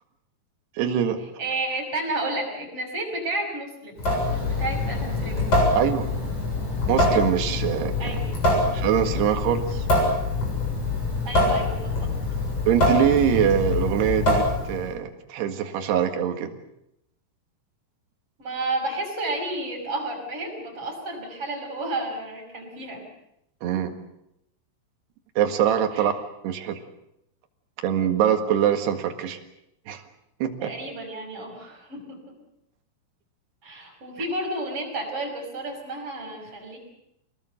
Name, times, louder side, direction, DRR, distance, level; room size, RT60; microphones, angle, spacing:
voice 1, 0.8-1.2 5.8-6.1 6.9-8.2 8.7-9.9 12.7-16.5 23.6-23.9 25.4-26.1 26.4-26.8 27.8-29.4 29.9-30.0 30.4-30.7, right 9 dB, 65° right, 6 dB, 3.7 m, -23 dB
voice 2, 1.4-5.5 8.0-8.3 11.2-12.1 18.4-23.0 25.9-26.1 30.6-32.3 33.6-36.8, right 2 dB, 30° right, 1 dB, 6.5 m, -31 dB
Water tap faucet / Sink (filling or washing) / Drip, 4.0-14.9, left 2 dB, 30° left, 8.1 m, -24 dB
25.0 x 19.5 x 8.0 m, 0.82 s
omnidirectional pair, 5.4 m